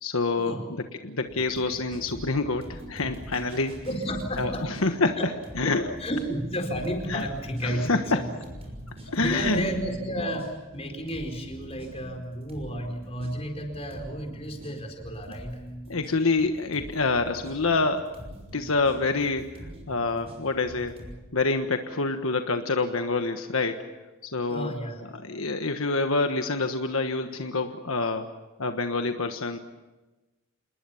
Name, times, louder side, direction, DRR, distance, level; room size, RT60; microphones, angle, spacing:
voice 1, 0.0-3.7 4.4-5.9 7.1-7.3 7.6-8.2 9.1-9.7 15.9-18.1 18.5-19.4 19.9-21.0 21.3-23.8 24.2-24.7 25.1-28.3 28.6-29.6, left 3 dB, 75° left, 6 dB, 1.4 m, -27 dB
sound 1, 1.3-21.2, equal, 30° right, 6.2 m, -43 dB
voice 2, 3.8-4.7 5.2-5.3 5.6-5.7 6.0-8.3 8.8-15.6 24.5-25.0, equal, 30° left, 4 dB, 4.5 m, -32 dB
28.5 x 20.5 x 7.2 m, 1.1 s
head